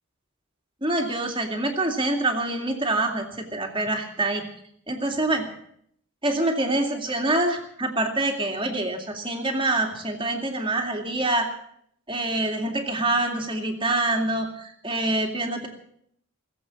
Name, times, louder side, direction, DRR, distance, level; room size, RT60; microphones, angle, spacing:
voice 1, 0.8-3.2 3.5-4.4 4.9-5.5 6.2-11.5 12.1-15.7, right 2 dB, 25° right, 3 dB, 2.3 m, -25 dB
19.5 x 7.9 x 8.5 m, 0.69 s
head